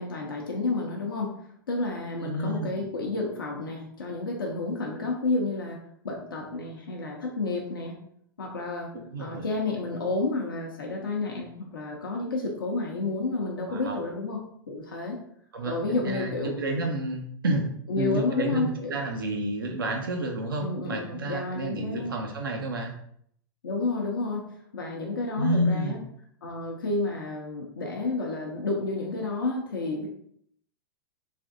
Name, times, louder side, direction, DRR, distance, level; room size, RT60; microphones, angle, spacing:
voice 1, 0.0-1.3 1.7-5.8 6.0-8.0 8.4-8.9 9.2-14.4 14.7-15.2 15.6-16.6 17.9-19.0 20.6-22.1 23.6-24.5 24.7-26.0 26.4-30.1, left 3 dB, 80° left, -1 dB, 0.6 m, -30 dB
voice 2, 2.2-2.9 9.0-9.5 13.7-14.0 15.5-15.8 16.0-17.7 18.0-22.9 25.4-26.0, right 1 dB, 80° right, 2 dB, 0.5 m, -30 dB
3.3 x 2.6 x 2.5 m, 0.67 s
hypercardioid pair, 100°, 11 cm